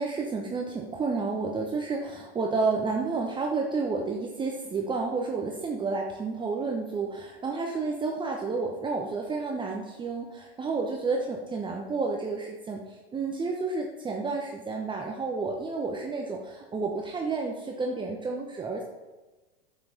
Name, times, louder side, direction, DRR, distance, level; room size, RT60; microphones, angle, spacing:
voice 1, 0.0-18.8, right 4 dB, 15° right, 1 dB, 1.0 m, -30 dB
10.0 x 7.3 x 4.2 m, 1.2 s
hypercardioid pair, 100°, 30 cm